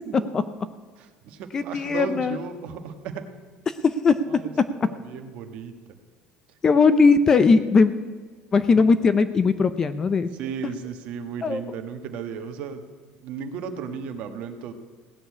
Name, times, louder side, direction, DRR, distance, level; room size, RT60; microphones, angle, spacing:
voice 1, 0.0-0.7 1.0-3.3 4.3-5.7 8.7-8.9 10.4-12.8 13.2-14.7, right 6 dB, 50° right, 7 dB, 1.4 m, -35 dB
voice 2, 1.5-2.4 3.7-4.4 6.6-7.9 8.5-10.3 11.4-11.6, left 4 dB, 20° left, 13 dB, 0.5 m, -19 dB
17.0 x 6.9 x 9.6 m, 1.5 s
cardioid pair, 175°, 3 cm